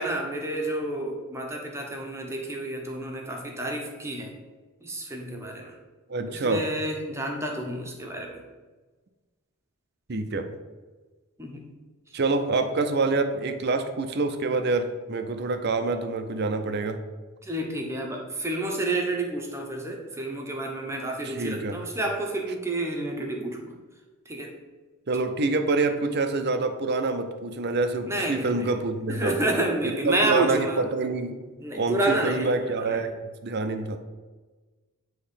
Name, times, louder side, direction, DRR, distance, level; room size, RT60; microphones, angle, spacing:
voice 1, 0.0-4.3 4.8-5.7 6.3-8.4 11.4-11.6 17.4-23.7 24.3-24.5 28.1-28.7 29.1-30.8 31.6-33.0, right 1 dB, 15° right, 1 dB, 0.9 m, -29 dB
voice 2, 6.1-6.6 10.1-10.5 12.1-17.0 21.2-21.8 25.1-29.4 29.8-31.4 31.7-33.1 33.4-34.0, right 3 dB, 50° right, 8 dB, 0.6 m, -26 dB
8.6 x 3.1 x 5.6 m, 1.3 s
head